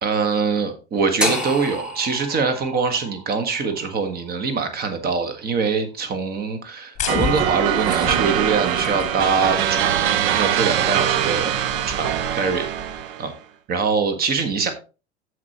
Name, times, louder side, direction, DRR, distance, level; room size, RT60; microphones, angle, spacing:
voice 1, 0.0-11.6 11.9-13.3 13.7-14.7, right 5 dB, 25° right, 8 dB, 1.5 m, -24 dB
sound 1, 1.2-5.3, left 1 dB, ahead, 1.2 m, -30 dB
sound 2, 6.9-13.0, left 7 dB, 20° left, 1.3 m, -33 dB
sound 3, 7.1-13.3, right 10 dB, 50° right, 0.8 m, -22 dB
14.0 x 4.6 x 2.9 m, 0.32 s
figure-of-eight pair, 85°, 34 cm